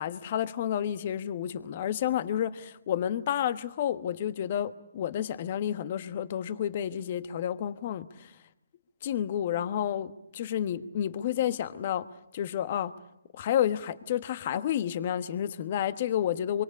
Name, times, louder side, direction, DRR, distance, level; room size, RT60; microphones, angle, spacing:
voice 1, 0.0-8.3 9.0-12.1 12.3-12.9 13.3-16.6, left 10 dB, 40° left, 1.3 m, -30 dB
25.0 x 24.5 x 8.4 m
hypercardioid pair, 155°, 0 cm